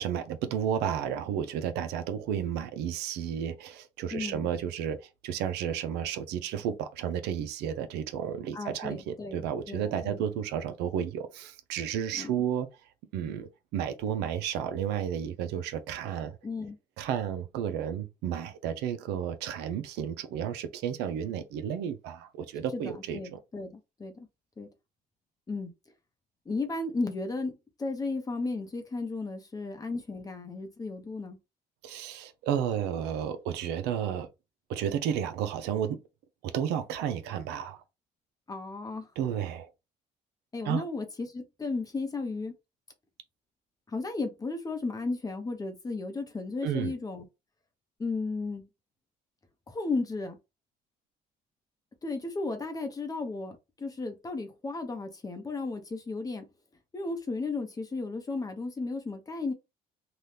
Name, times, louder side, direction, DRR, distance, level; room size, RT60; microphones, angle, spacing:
voice 1, 0.0-12.7 13.1-16.4 17.0-23.4 31.8-34.3 34.7-36.0 36.4-37.8 39.2-39.7 40.6-40.8 46.6-46.9, right 9 dB, 85° right, 0.5 m, -32 dB
voice 2, 4.1-4.5 8.5-10.3 12.1-12.3 16.4-16.8 22.7-24.3 24.6-24.7 25.5-25.7 26.5-31.4 38.5-39.1 40.5-42.5 43.9-47.2 48.0-48.7 49.7-50.4 52.0-56.5 56.9-59.5, left 3 dB, 20° left, 0.7 m, -34 dB
2.8 x 2.3 x 3.2 m
cardioid pair, 110°, 17 cm